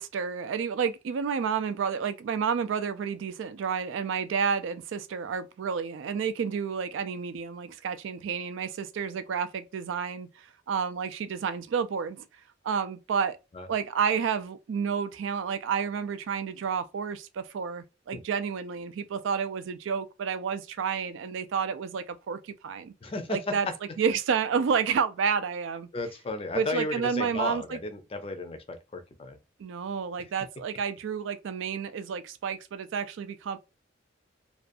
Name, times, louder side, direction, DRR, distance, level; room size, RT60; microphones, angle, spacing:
voice 1, 0.0-12.2 12.6-13.4 13.7-22.9 23.3-23.7 24.0-25.9 26.5-27.8 29.6-33.6, right 6 dB, 85° right, 0.4 m, -30 dB
voice 2, 23.0-23.7 25.9-29.4, left 2 dB, 30° left, 0.5 m, -34 dB
2.5 x 2.3 x 2.5 m
head